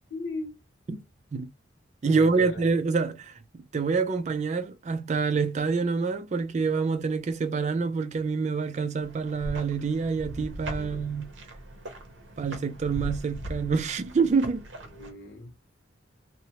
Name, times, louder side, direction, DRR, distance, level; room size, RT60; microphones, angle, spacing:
voice 1, 0.1-0.6 2.1-2.7 10.7-11.1 14.9-15.5, left 2 dB, 65° left, 0.8 m, -38 dB
voice 2, 2.0-11.3 12.4-14.7, right 4 dB, 35° right, 0.3 m, -27 dB
sound 1, 9.0-15.1, right 1 dB, 70° right, 0.6 m, -39 dB
2.7 x 2.1 x 2.8 m
head